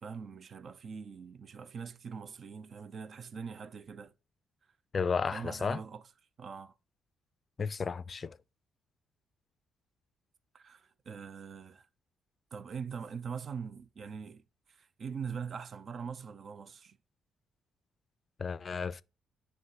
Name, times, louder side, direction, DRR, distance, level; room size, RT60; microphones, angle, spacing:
voice 1, 0.0-4.1 5.3-6.0 6.4-6.7 10.5-11.9 12.5-17.0, right 6 dB, 50° right, 0.5 m, -42 dB
voice 2, 4.9-5.8 7.6-8.4 18.4-19.0, left 5 dB, 40° left, 0.4 m, -33 dB
9.3 x 3.4 x 5.5 m
cardioid pair, 90°, 0 cm